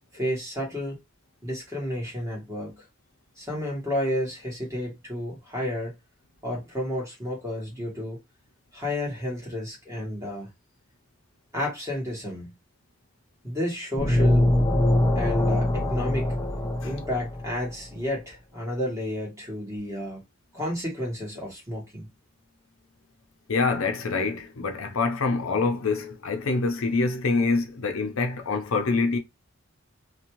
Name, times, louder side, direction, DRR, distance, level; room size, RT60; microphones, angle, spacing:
voice 1, 0.1-1.0 1.4-2.8 3.4-6.0 6.4-8.2 8.7-10.5 11.5-12.5 13.4-14.5 15.1-16.3 16.8-20.2 20.5-22.1, left 1 dB, 15° right, 1.2 m, -31 dB
sound 1, 14.0-17.7, left 1 dB, 15° left, 0.4 m, -23 dB
voice 2, 23.5-29.2, left 3 dB, 75° left, 0.6 m, -25 dB
2.6 x 2.2 x 2.9 m
head